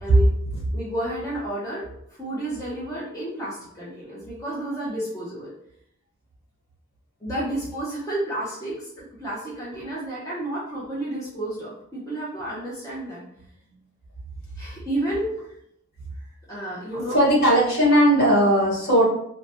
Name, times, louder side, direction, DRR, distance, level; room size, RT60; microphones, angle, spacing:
voice 1, 0.0-0.3 0.7-1.9 2.2-5.5 7.2-13.8 14.6-15.5 16.2-17.2, right 1 dB, 15° left, -8 dB, 0.7 m, -31 dB
voice 2, 16.9-19.1, equal, 50° left, -5 dB, 1.5 m, -18 dB
4.5 x 2.1 x 2.8 m, 0.73 s
head